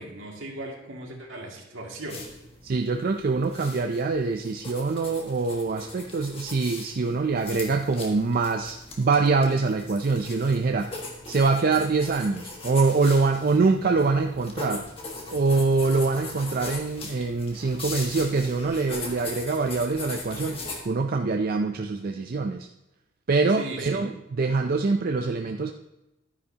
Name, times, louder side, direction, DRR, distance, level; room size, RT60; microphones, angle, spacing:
voice 1, 0.0-2.3 23.5-24.0, right 2 dB, 75° right, -1 dB, 2.3 m, -37 dB
sound 1, 2.1-20.8, left 3 dB, 30° left, 1.6 m, -40 dB
voice 2, 2.6-10.9 11.3-14.9 15.3-22.7 23.3-25.7, right 4 dB, 45° right, 4 dB, 0.5 m, -24 dB
12.0 x 9.9 x 2.9 m, 0.93 s
head